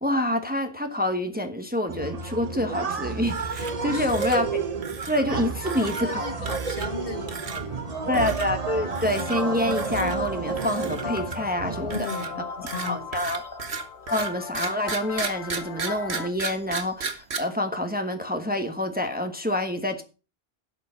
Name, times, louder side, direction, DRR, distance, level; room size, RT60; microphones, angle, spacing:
voice 1, 0.0-4.7 5.1-6.5 8.1-12.1 12.8-13.5 14.1-20.0, left 1 dB, 10° right, 1.2 m, -27 dB
sound 1, 1.9-12.0, right 4 dB, 40° right, 0.9 m, -31 dB
sound 2, 3.2-3.8 4.1-4.4 4.8-5.3 5.7-6.0 6.5-7.0 7.3-7.6 8.1-8.5 8.9-9.4 9.7-10.2 10.6-11.5 11.9-17.4, right 5 dB, 80° right, 1.6 m, -34 dB
voice 2, 3.8-4.1 5.6-8.1 11.8-13.1, left 4 dB, 60° left, 1.9 m, -36 dB
sound 3, 6.9-16.3, left 5 dB, 80° left, 1.3 m, -38 dB
11.5 x 8.0 x 5.7 m
omnidirectional pair, 1.1 m